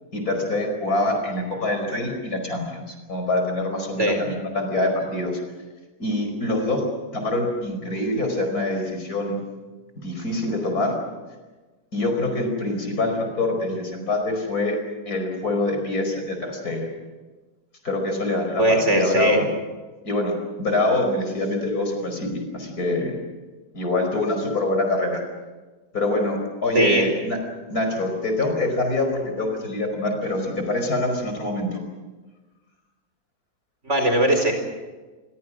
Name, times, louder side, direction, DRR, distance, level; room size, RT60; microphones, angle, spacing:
voice 1, 0.1-5.4 6.0-6.8 7.1-9.4 10.0-11.0 11.9-14.8 15.1-16.9 17.8-19.5 20.0-20.3 20.6-23.2 23.7-25.2 25.9-27.4 27.7-31.8, left 2 dB, 55° left, 4 dB, 5.5 m, -25 dB
voice 2, 18.6-19.4 26.7-27.0 33.8-34.5, right 1 dB, 40° right, 4 dB, 4.9 m, -19 dB
27.5 x 23.5 x 6.3 m, 1.3 s
omnidirectional pair, 1.9 m